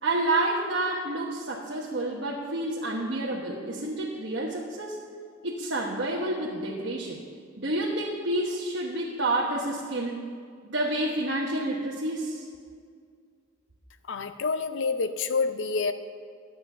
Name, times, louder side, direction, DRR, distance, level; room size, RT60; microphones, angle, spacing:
voice 1, 0.0-5.0 5.4-7.2 7.6-10.2 10.6-12.4, right 2 dB, 65° right, -4 dB, 1.1 m, -29 dB
voice 2, 14.1-15.9, left 4 dB, 70° left, 10 dB, 0.5 m, -27 dB
12.0 x 7.8 x 5.5 m, 2.2 s
head